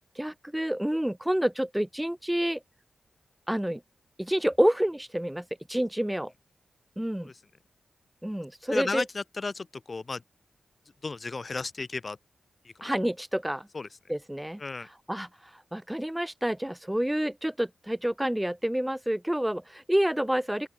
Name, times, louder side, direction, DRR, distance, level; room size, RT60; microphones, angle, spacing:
voice 1, 0.1-2.6 3.5-3.8 4.2-6.3 7.0-7.3 8.2-9.0 12.8-13.7 14.1-14.6 15.1-20.7, right 1 dB, 10° right, 2.9 m, -28 dB
voice 2, 8.7-10.2 11.0-12.2 12.6-12.7 13.7-13.9 14.6-14.9, left 3 dB, 45° left, 7.3 m, -34 dB
open air
cardioid pair, 45°, 0 cm